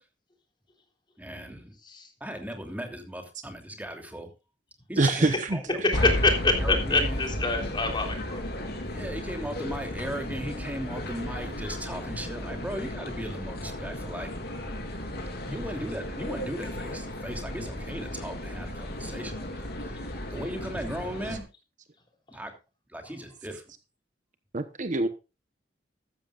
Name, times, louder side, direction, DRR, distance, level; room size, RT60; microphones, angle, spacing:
voice 1, 1.2-1.7 2.2-4.3 4.9-6.1 6.6-7.2 8.9-14.3 15.5-21.4 22.3-22.5 22.9-23.6, equal, 10° right, 3.0 m, -37 dB
voice 2, 5.0-5.6 24.5-25.1, right 2 dB, 45° right, 1.0 m, -25 dB
voice 3, 5.8-8.4, left 3 dB, 25° left, 3.5 m, -26 dB
sound 1, 5.9-21.4, left 1 dB, 60° left, 3.5 m, -34 dB
14.5 x 13.0 x 2.5 m
head